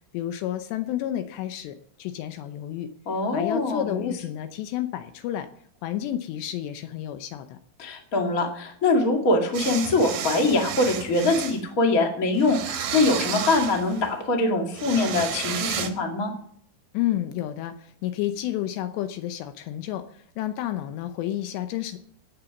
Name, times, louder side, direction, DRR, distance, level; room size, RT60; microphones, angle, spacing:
voice 1, 0.1-2.9 3.3-5.5 5.8-7.6 16.9-22.0, left 12 dB, 80° left, 9 dB, 2.7 m, -30 dB
voice 2, 3.0-4.1 7.8-16.3, left 2 dB, 50° left, 2 dB, 1.0 m, -23 dB
sound 1, 9.5-11.6 12.4-14.1 14.7-15.9, right 8 dB, 70° right, 1.8 m, -32 dB
17.5 x 6.8 x 7.1 m, 0.64 s
omnidirectional pair, 5.4 m